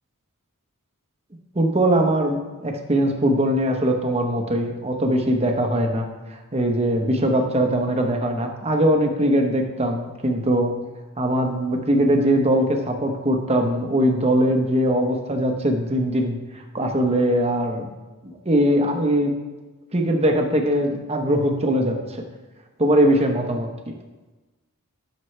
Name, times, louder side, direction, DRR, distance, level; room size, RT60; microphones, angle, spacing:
voice 1, 1.5-10.8 11.2-17.9 18.2-19.3 19.9-22.2 22.8-24.0, right 1 dB, 30° right, 3 dB, 1.0 m, -21 dB
11.0 x 7.0 x 3.3 m, 1.2 s
head